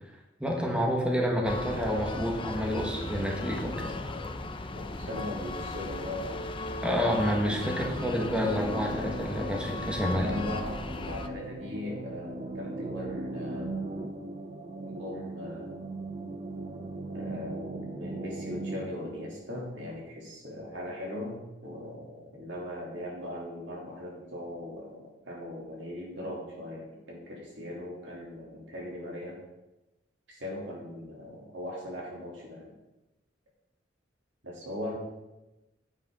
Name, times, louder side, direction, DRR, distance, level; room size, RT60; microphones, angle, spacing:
voice 1, 0.4-3.9 6.8-10.3, equal, 5° right, -1 dB, 1.6 m, -29 dB
sound 1, 1.5-11.3, left 2 dB, 30° left, 0.6 m, -37 dB
voice 2, 5.0-6.6 10.2-13.9 14.8-15.8 17.1-22.0 22.3-29.4 30.3-32.7 34.4-35.0, left 1 dB, 70° right, -2 dB, 3.1 m, -39 dB
sound 2, 6.9-18.9, right 2 dB, 35° right, 0.8 m, -38 dB
9.8 x 8.9 x 3.8 m, 1.0 s
head